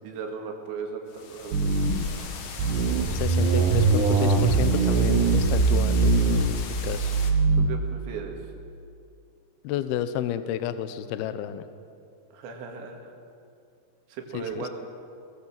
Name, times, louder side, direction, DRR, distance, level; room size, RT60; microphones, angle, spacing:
voice 1, 0.0-2.1 7.6-8.4 12.3-13.1 14.1-14.7, right 5 dB, 85° right, 2 dB, 4.5 m, -37 dB
sound 1, 1.1-7.3, left 5 dB, 55° left, 2.3 m, -39 dB
sound 2, 1.5-2.1 2.6-7.7, right 4 dB, 65° right, 2.3 m, -22 dB
voice 2, 3.1-7.1 9.6-11.6 14.3-14.7, left 10 dB, 75° left, 12 dB, 2.5 m, -31 dB
22.5 x 20.0 x 7.3 m, 2.5 s
omnidirectional pair, 5.1 m